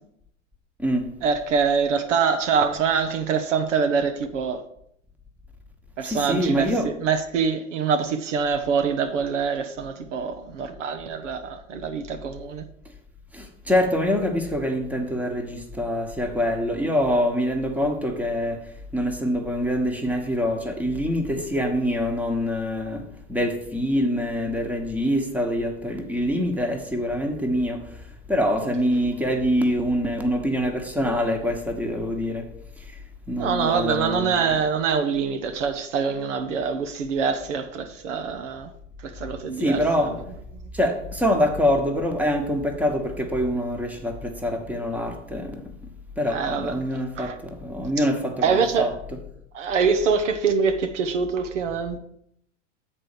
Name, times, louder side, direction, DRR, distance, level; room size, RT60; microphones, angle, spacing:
voice 1, 1.2-4.6 6.0-12.6 33.4-38.7 39.0-40.1 46.3-46.7 47.2-47.3 48.4-48.9 49.5-52.0, right 5 dB, 75° right, 0.9 m, -24 dB
voice 2, 6.0-6.9 13.3-18.6 18.9-23.0 23.3-27.8 28.3-32.5 33.3-34.6 39.6-40.2 40.7-45.6 46.2-48.9, equal, 5° right, 1.3 m, -25 dB
7.4 x 4.4 x 6.8 m
figure-of-eight pair, 85°, 37 cm